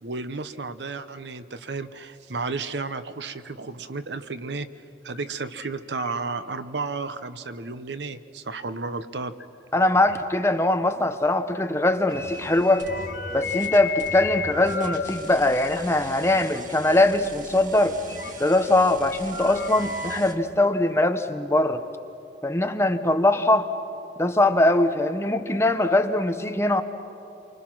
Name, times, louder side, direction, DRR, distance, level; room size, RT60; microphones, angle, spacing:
voice 1, 0.0-4.7 5.0-9.3, right 3 dB, 75° right, 12 dB, 0.9 m, -32 dB
sound 1, 5.2-5.3 5.6-5.7 6.0-6.5 7.0-7.2 7.7-7.8 9.4-9.5 9.9-10.2 10.6-10.7 12.1-15.0 15.4-15.8 16.5-16.6 16.8-17.0 18.1-18.5 19.0-20.2, left 5 dB, 85° left, 2.0 m, -34 dB
voice 2, 9.7-12.9 13.3-18.0 18.4-21.8 22.4-23.7 24.2-26.8, left 2 dB, 15° left, 7 dB, 0.9 m, -21 dB
sound 2, 12.1-20.3, right 2 dB, 45° right, 1.9 m, -42 dB
28.5 x 24.5 x 6.1 m, 2.7 s
head